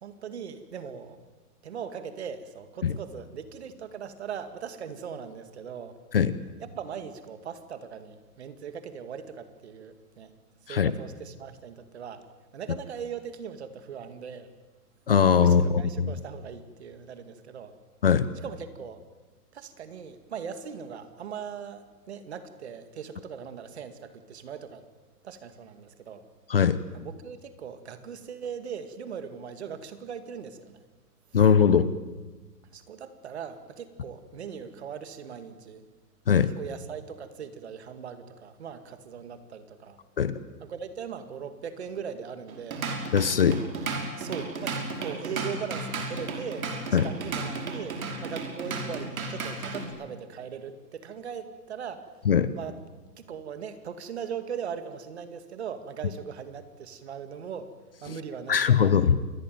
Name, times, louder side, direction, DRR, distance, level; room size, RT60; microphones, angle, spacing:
voice 1, 0.0-1.2 1.6-6.0 6.6-10.3 10.7-12.2 12.5-14.5 15.4-17.7 18.4-19.0 19.5-24.8 25.2-26.2 26.9-30.8 32.7-35.8 36.6-40.0 40.6-42.9 44.2-52.1 52.6-52.8 53.2-57.7 58.0-59.2, right 7 dB, 45° right, 10 dB, 2.2 m, -39 dB
voice 2, 15.1-16.2 18.0-18.3 26.5-26.8 31.3-31.9 36.3-36.5 40.2-40.4 43.1-43.6 46.9-47.1 52.3-52.5 58.5-59.2, left 7 dB, 35° left, 15 dB, 0.8 m, -21 dB
Drum kit / Drum, 42.5-49.9, right 3 dB, 60° right, 5.8 m, -34 dB
27.5 x 21.5 x 9.2 m, 1.3 s
hypercardioid pair, 180°, 47 cm